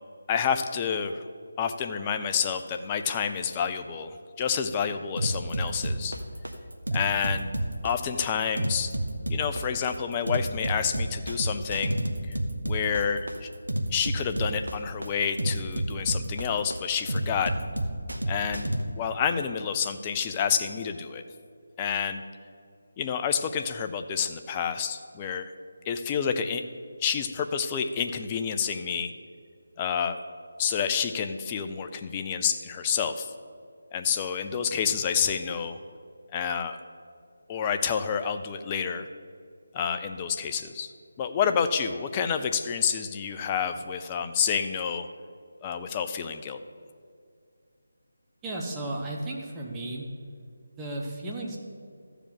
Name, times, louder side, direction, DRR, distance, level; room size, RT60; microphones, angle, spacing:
voice 1, 0.3-1.2 1.6-6.2 6.9-7.5 7.8-8.9 9.3-12.0 12.3-12.4 12.6-13.5 13.9-17.5 18.3-18.7 19.0-21.2 21.8-22.2 23.0-25.5 25.9-26.6 27.0-29.1 29.8-30.2 30.6-33.3 33.9-35.8 36.3-36.8 37.5-39.1 39.7-40.9 41.2-45.1 45.6-46.6, left 7 dB, 20° left, 7 dB, 0.5 m, -29 dB
sound 1, 5.2-18.8, right 1 dB, 80° right, 1.3 m, -30 dB
voice 2, 48.4-50.1 50.6-51.6, right 2 dB, 10° right, -2 dB, 1.2 m, -34 dB
13.5 x 5.1 x 7.6 m, 2.3 s
figure-of-eight pair, 160°, 0 cm